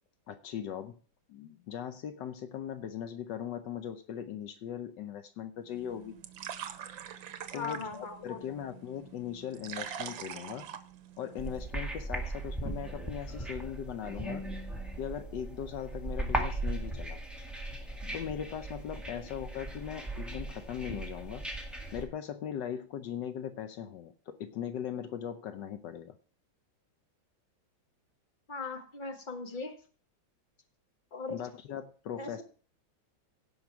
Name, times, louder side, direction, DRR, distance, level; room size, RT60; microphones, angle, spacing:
voice 1, 0.3-1.0 1.3-6.1 7.5-10.7 11.2-14.4 15.0-17.2 18.0-21.5 21.9-26.1 31.3-32.4, left 9 dB, 75° left, 10 dB, 1.3 m, -39 dB
sound 1, 5.7-11.6, right 9 dB, 90° right, 1.6 m, -44 dB
voice 2, 7.5-8.6 19.1-19.3 28.5-29.7 31.1-31.4 32.2-32.4, left 4 dB, 25° left, 5 dB, 1.5 m, -39 dB
sound 2, 11.4-22.0, right 1 dB, ahead, 1.7 m, -38 dB
16.5 x 5.6 x 4.6 m, 0.40 s
omnidirectional pair, 2.0 m